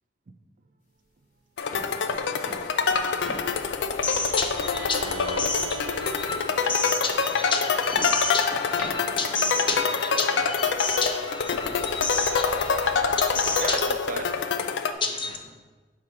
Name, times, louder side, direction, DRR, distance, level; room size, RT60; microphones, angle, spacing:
sound 1, 0.8-10.7, left 1 dB, 45° left, 1.5 m, -44 dB
sound 2, 1.6-14.9, left 5 dB, 80° left, 0.4 m, -26 dB
voice 1, 2.4-4.0 5.1-5.4, left 2 dB, 60° left, 0.9 m, -45 dB
voice 2, 3.0-3.4 5.6-5.9 10.7-10.8 12.9-13.2 13.5-15.0, right 4 dB, 50° right, 0.5 m, -39 dB
voice 3, 3.9-13.8 15.0-15.5, left 3 dB, 30° left, 0.6 m, -30 dB
Bowed string instrument, 4.6-8.4, right 4 dB, 85° right, 0.7 m, -42 dB
4.8 x 3.8 x 5.7 m
head